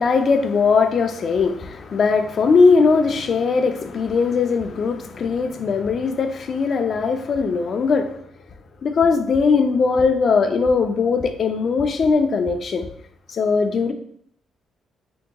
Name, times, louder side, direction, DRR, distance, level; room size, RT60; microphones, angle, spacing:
voice 1, 0.0-8.2 8.8-12.9 13.3-13.9, left 4 dB, 50° left, 7 dB, 0.3 m, -19 dB
3.6 x 2.8 x 2.2 m, 0.68 s
cardioid pair, 90°, 0 cm